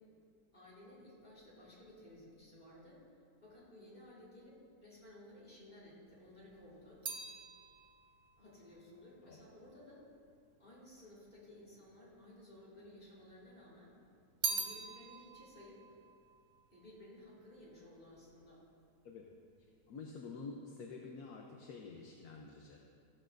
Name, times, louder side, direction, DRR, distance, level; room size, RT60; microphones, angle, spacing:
voice 1, 0.5-3.0 3.4-7.0 8.4-10.0 10.6-14.0 14.5-15.8 16.7-18.6, left 1 dB, 30° left, -6 dB, 3.8 m, -56 dB
sound 1, 6.1-10.5 11.3-12.1 12.4-13.5 13.8-17.4 17.6-18.2, right 3 dB, 50° right, 0.5 m, -44 dB
voice 2, 19.9-22.8, left 4 dB, 70° left, 0 dB, 1.3 m, -48 dB
14.5 x 13.5 x 2.6 m, 2.3 s
omnidirectional pair, 1.8 m